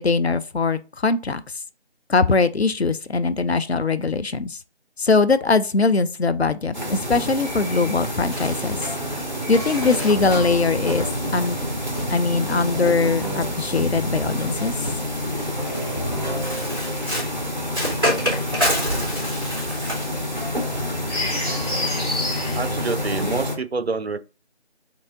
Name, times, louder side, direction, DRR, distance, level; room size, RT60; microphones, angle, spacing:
voice 1, 0.0-1.4 2.1-4.6 5.0-8.8 9.5-11.1 11.3-11.6 12.1-14.7, left 4 dB, 65° left, 0.6 m, -21 dB
sound 1, 6.7-23.6, left 1 dB, 40° right, 1.1 m, -28 dB
Bird, 7.1-13.6 14.5-23.3, equal, 20° right, 2.4 m, -30 dB
sound 2, 9.8-16.5, equal, 35° left, 0.7 m, -31 dB
voice 2, 22.5-24.2, right 4 dB, 65° right, 0.6 m, -27 dB
4.6 x 2.7 x 3.9 m
figure-of-eight pair, 170°, 34 cm